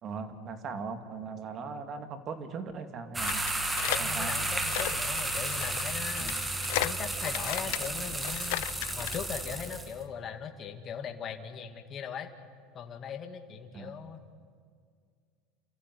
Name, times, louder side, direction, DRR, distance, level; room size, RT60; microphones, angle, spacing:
voice 1, 0.0-3.4 4.0-4.3 13.7-13.9, right 5 dB, 35° right, 8 dB, 2.5 m, -39 dB
sound 1, 3.1-9.9, right 2 dB, 10° right, 2.2 m, -33 dB
sound 2, 3.2-9.2, left 20 dB, 75° left, 0.7 m, -35 dB
voice 2, 3.9-6.4 6.8-8.6 8.9-12.3 12.7-14.2, left 7 dB, 35° left, 5 dB, 2.1 m, -39 dB
29.0 x 14.5 x 9.5 m, 2.1 s
supercardioid pair, 125°, 0 cm